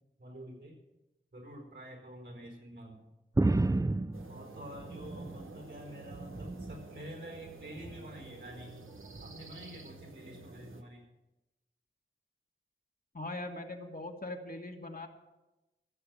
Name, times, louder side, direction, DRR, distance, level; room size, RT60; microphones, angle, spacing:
voice 1, 0.2-0.8 1.3-3.0 4.3-8.9 9.2-11.0, equal, 60° right, 2 dB, 4.5 m, -48 dB
sound 1, 3.4-5.6 6.0-6.9 7.8-8.1 9.1-9.3, right 2 dB, 15° right, 0.4 m, -32 dB
sound 2, 4.1-10.8, right 3 dB, 85° right, 1.2 m, -50 dB
voice 2, 13.1-15.1, left 2 dB, 45° left, 2 dB, 1.8 m, -41 dB
15.0 x 6.8 x 8.8 m, 1.0 s
wide cardioid pair, 60°, 20 cm